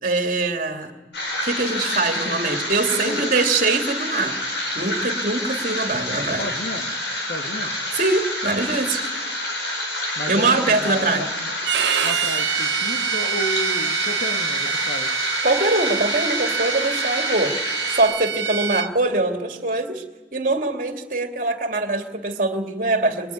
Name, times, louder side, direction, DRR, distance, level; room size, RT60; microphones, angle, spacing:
voice 1, 0.0-0.9 1.4-4.4 4.7-6.5 7.9-9.0 10.3-11.2 15.4-17.5 17.9-20.0 20.3-23.3, right 3 dB, 45° right, 4 dB, 2.7 m, -23 dB
sound 1, 1.1-18.0, left 1 dB, 70° left, 7.5 m, -28 dB
voice 2, 2.9-3.3 6.4-6.9 7.3-7.7 10.2-11.5 12.0-15.1, left 1 dB, 55° left, 1 dB, 2.2 m, -32 dB
Bowed string instrument, 11.6-18.9, right 8 dB, 80° right, 1.1 m, -26 dB
26.0 x 23.0 x 9.6 m, 1.2 s
head